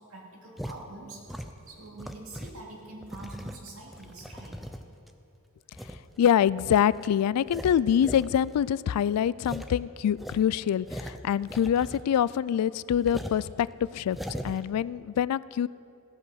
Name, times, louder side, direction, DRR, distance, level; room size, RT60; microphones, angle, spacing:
voice 1, 0.0-4.8, right 2 dB, 70° right, -1 dB, 2.4 m, -45 dB
sound 1, 0.6-0.8 1.3-2.6 3.0-5.1 5.7-6.0 6.5-6.6 7.0-7.1 7.4-8.3 8.5-8.6 8.9-9.0 9.4-9.7 10.1-12.2 12.5-12.6 13.0-13.4 14.0-14.6, equal, ahead, 0.5 m, -39 dB
voice 2, 6.2-15.7, left 9 dB, 90° left, 18 dB, 0.3 m, -25 dB
15.5 x 8.2 x 6.5 m, 2.6 s
head